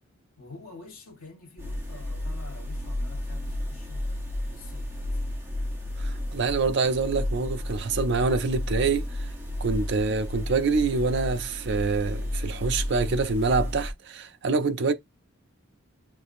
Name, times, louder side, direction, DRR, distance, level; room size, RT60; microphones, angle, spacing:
voice 1, 0.4-4.1 4.5-5.2, left 3 dB, 85° left, 1.4 m, -47 dB
sound 1, 1.6-13.9, left 1 dB, 10° right, 0.8 m, -32 dB
voice 2, 6.0-9.3 9.6-14.9, right 4 dB, 55° right, 0.4 m, -26 dB
6.2 x 2.5 x 2.5 m
head